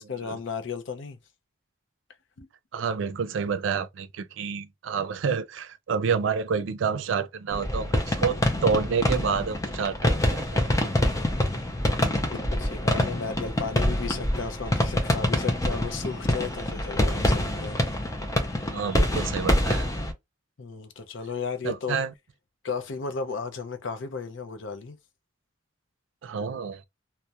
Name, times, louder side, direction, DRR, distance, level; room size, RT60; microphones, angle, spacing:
voice 1, 0.1-1.2 2.4-2.5 12.3-18.0 20.6-22.0 22.6-25.0, left 5 dB, 70° left, 0.5 m, -34 dB
voice 2, 2.7-11.0 12.0-12.2 12.9-13.1 18.7-19.9 21.6-22.1 26.2-26.8, right 6 dB, 70° right, 0.4 m, -29 dB
sound 1, 7.5-20.1, left 1 dB, 15° left, 0.5 m, -26 dB
2.3 x 2.1 x 2.8 m
head